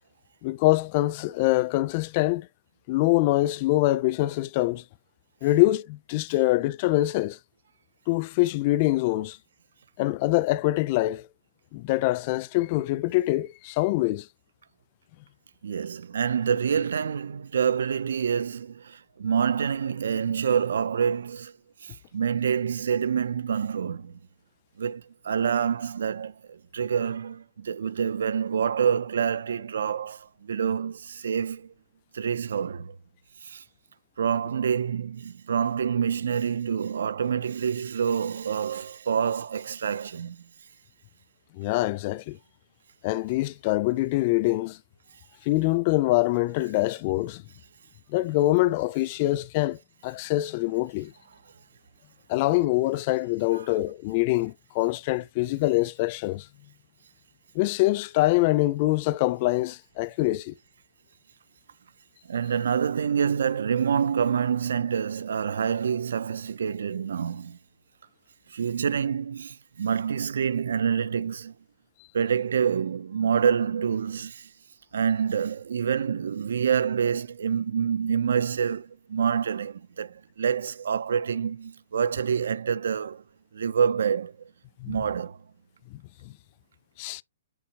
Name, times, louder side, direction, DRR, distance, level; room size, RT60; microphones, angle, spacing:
voice 1, 0.4-2.5 2.9-4.8 5.4-7.4 8.1-9.4 10.0-11.3 11.7-14.3 41.5-42.4 43.0-44.8 45.5-47.4 48.1-51.1 52.3-56.5 57.5-60.5 84.8-85.0 85.9-86.3 87.0-87.2, left 18 dB, 30° left, 0.3 m, -24 dB
voice 2, 15.6-21.5 21.8-24.1 24.8-31.7 32.1-32.9 33.5-33.6 34.2-40.4 62.3-67.6 68.5-71.5 72.1-74.4 74.9-83.2 83.5-84.3 84.9-85.4, right 7 dB, 75° right, 0.4 m, -27 dB
7.1 x 5.1 x 2.8 m
hypercardioid pair, 165°, 0 cm